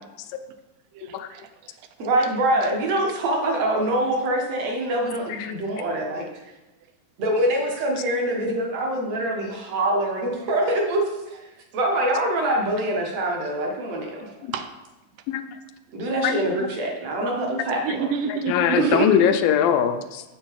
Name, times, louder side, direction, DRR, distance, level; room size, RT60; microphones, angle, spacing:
voice 1, 0.9-2.1 4.0-4.1 5.9-6.0 10.4-10.5 14.3-14.8 17.7-19.0, right 6 dB, 80° right, 8 dB, 2.2 m, -31 dB
voice 2, 2.0-6.3 7.2-11.5 11.7-14.3 15.9-18.0 18.8-19.1, right 1 dB, 55° right, 0 dB, 2.1 m, -24 dB
voice 3, 18.5-20.2, left 9 dB, 85° left, 8 dB, 2.3 m, -21 dB
7.7 x 6.9 x 4.5 m, 1.1 s
omnidirectional pair, 4.0 m